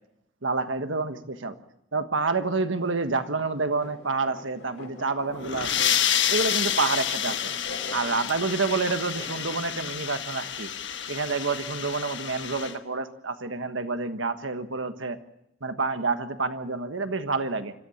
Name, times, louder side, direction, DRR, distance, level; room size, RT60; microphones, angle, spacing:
voice 1, 0.4-1.6 1.9-5.9 6.3-7.5 7.9-10.7 11.1-15.2 15.6-17.7, right 4 dB, 85° right, 9 dB, 1.4 m, -28 dB
sound 1, 2.8-9.7, left 1 dB, 90° left, 4.6 m, -45 dB
sound 2, 5.3-12.7, left 9 dB, 70° left, 1.3 m, -29 dB
26.5 x 14.5 x 7.1 m, 0.84 s
head